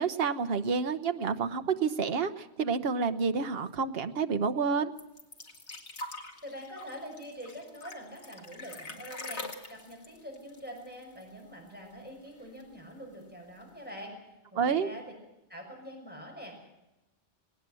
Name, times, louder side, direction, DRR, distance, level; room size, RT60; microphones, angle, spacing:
voice 1, 0.0-4.9 14.5-14.9, right 5 dB, 60° right, 10 dB, 1.2 m, -29 dB
sound 1, 5.0-11.4 11.7-11.8 12.1-12.8 13.6-13.7, left 2 dB, 80° left, 2.3 m, -44 dB
voice 2, 6.4-15.0 15.5-16.7, equal, 10° right, 0 dB, 6.1 m, -45 dB
19.5 x 18.0 x 7.7 m, 0.96 s
omnidirectional pair, 1.1 m